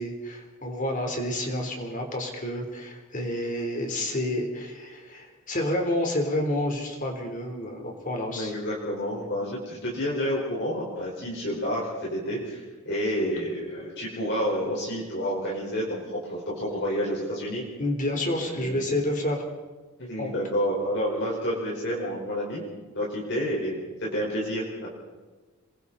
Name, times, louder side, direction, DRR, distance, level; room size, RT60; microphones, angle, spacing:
voice 1, 0.0-8.5 17.8-19.4 20.2-20.3, left 1 dB, 35° left, 3 dB, 3.9 m, -29 dB
voice 2, 8.3-17.6 18.4-19.0 20.0-22.6 22.9-24.9, equal, 50° left, -4 dB, 4.9 m, -29 dB
27.5 x 22.5 x 4.3 m, 1.3 s
head